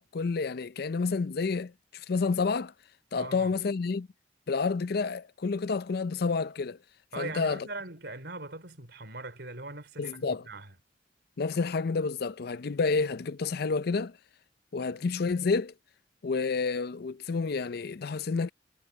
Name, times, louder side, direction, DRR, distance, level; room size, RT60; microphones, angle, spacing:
voice 1, 0.0-1.7 2.1-2.7 3.1-4.1 4.5-6.8 7.2-7.7 10.0-10.4 11.4-14.1 14.7-15.7 16.2-18.5, left 4 dB, 60° left, 0.5 m, -29 dB
voice 2, 3.2-3.5 7.1-10.7, right 2 dB, 65° right, 4.2 m, -41 dB
head